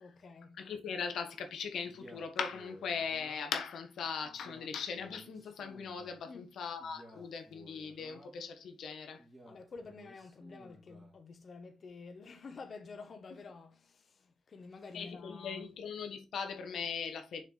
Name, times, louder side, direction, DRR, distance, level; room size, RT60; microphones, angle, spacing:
voice 1, 0.0-0.6 6.2-6.5 9.5-15.6, left 4 dB, 45° left, 1.3 m, -49 dB
voice 2, 0.6-9.2 14.9-17.4, left 6 dB, 75° left, 1.5 m, -39 dB
Male speech man speaking, 1.8-3.7 4.2-6.2 6.8-8.5 9.2-11.2, equal, 10° right, 2.6 m, -56 dB
6.5 x 4.7 x 4.0 m
cardioid pair, 125°, 0 cm